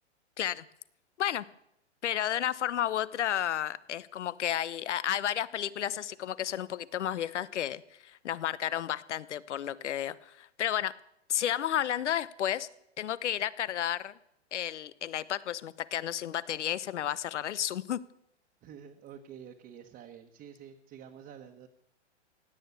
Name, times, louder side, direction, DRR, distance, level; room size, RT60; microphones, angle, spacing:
voice 1, 2.0-10.9 11.3-12.7 13.0-14.1 14.5-18.0, left 11 dB, 80° left, 18 dB, 0.9 m, -32 dB
voice 2, 18.6-21.7, right 8 dB, 30° right, 3 dB, 1.4 m, -49 dB
17.5 x 9.1 x 8.2 m, 0.79 s
hypercardioid pair, 125°, 35 cm